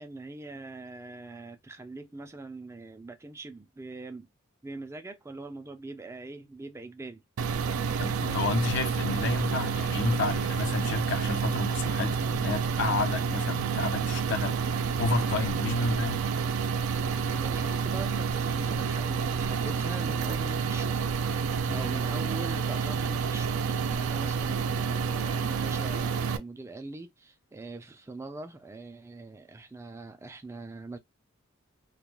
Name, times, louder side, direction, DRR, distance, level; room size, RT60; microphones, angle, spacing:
voice 1, 0.0-4.3 4.6-7.2 16.9-21.0 21.7-31.0, right 3 dB, 15° right, 0.3 m, -42 dB
sound 1, 7.4-26.4, right 6 dB, 85° right, 0.4 m, -29 dB
voice 2, 8.0-16.3 21.7-21.9, left 4 dB, 60° left, 0.5 m, -31 dB
2.3 x 2.3 x 2.9 m
head